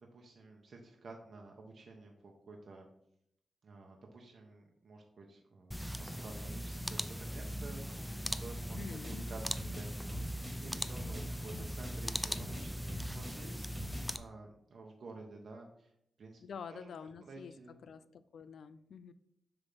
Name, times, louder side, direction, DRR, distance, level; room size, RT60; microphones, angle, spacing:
voice 1, 0.0-2.9 3.6-8.1 8.4-15.9 16.2-16.4 16.7-17.8, right 3 dB, 55° right, 1 dB, 0.9 m, -51 dB
sound 1, 5.7-14.2, equal, 5° left, 0.4 m, -40 dB
sound 2, 8.7-14.2, equal, 15° right, 1.9 m, -46 dB
voice 2, 8.8-9.2 16.4-17.5 17.8-19.1, left 6 dB, 75° left, 14 dB, 0.4 m, -47 dB
6.8 x 3.6 x 5.5 m, 0.75 s
wide cardioid pair, 125°, 0 cm